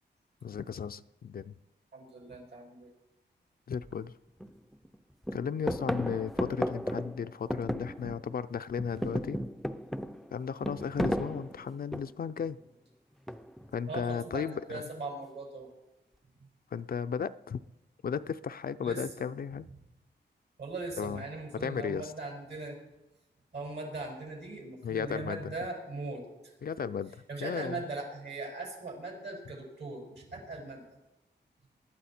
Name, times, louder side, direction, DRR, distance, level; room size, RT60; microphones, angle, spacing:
voice 1, 0.4-1.5 3.7-4.1 5.3-9.4 10.3-12.6 13.7-14.8 16.7-17.6 18.0-19.7 21.0-21.2 21.5-22.1 24.8-25.5 26.6-27.1 27.4-27.8, left 7 dB, 55° left, 12 dB, 0.5 m, -35 dB
voice 2, 1.9-2.9 13.9-15.7 18.8-19.3 20.6-22.8 23.5-26.3 27.3-30.8, right 3 dB, 70° right, -1 dB, 5.6 m, -40 dB
sound 1, 3.8-3.9 4.4-5.0 5.2-8.4 8.7-12.3 13.3-13.7, equal, ahead, 0.5 m, -34 dB
20.0 x 12.0 x 4.4 m, 0.95 s
wide cardioid pair, 125°, 19 cm